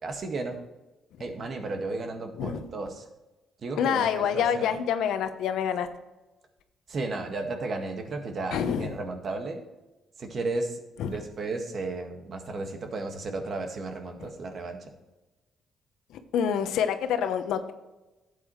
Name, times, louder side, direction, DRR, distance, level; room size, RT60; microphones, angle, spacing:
voice 1, 0.0-0.6 1.2-3.1 3.6-4.7 6.9-9.6 10.2-10.8 11.1-14.9, right 3 dB, 50° right, 5 dB, 1.8 m, -34 dB
voice 2, 2.4-2.7 3.8-5.9 8.5-8.9 11.0-11.2 16.3-17.7, left 8 dB, 85° left, 9 dB, 0.9 m, -27 dB
12.0 x 8.5 x 3.2 m, 1.1 s
cardioid pair, 90°, 0 cm